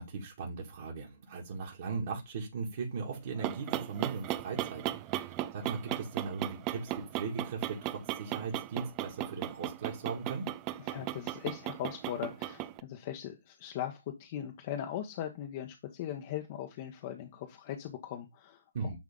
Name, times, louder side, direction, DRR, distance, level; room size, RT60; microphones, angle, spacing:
voice 1, 0.0-10.5 18.7-19.0, right 4 dB, 45° right, -3 dB, 2.3 m, -38 dB
sound 1, 3.1-12.8, right 14 dB, 25° right, 0.5 m, -37 dB
voice 2, 10.8-18.9, left 11 dB, 35° left, 3 dB, 1.1 m, -39 dB
10.5 x 3.6 x 3.7 m, 0.21 s
figure-of-eight pair, 140°, 0 cm